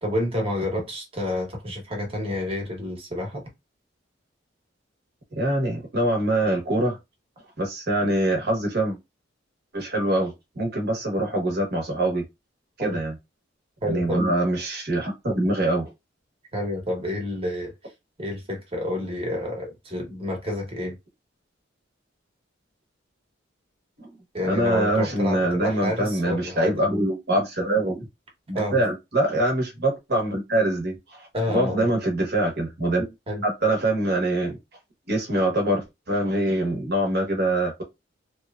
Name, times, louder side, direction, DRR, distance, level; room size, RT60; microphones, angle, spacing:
voice 1, 0.0-3.5 12.8-13.0 13.8-14.3 16.5-17.7 18.2-21.0 24.3-26.8 28.5-28.8 31.3-31.8 33.3-33.4, left 1 dB, 30° right, 1.0 m, -29 dB
voice 2, 5.3-7.0 7.6-9.0 9.7-12.2 12.8-13.1 13.9-15.9 24.0-24.1 24.4-28.1 28.5-33.1 33.4-34.6 35.1-37.8, right 1 dB, 60° right, 1.0 m, -24 dB
2.9 x 2.2 x 2.3 m
head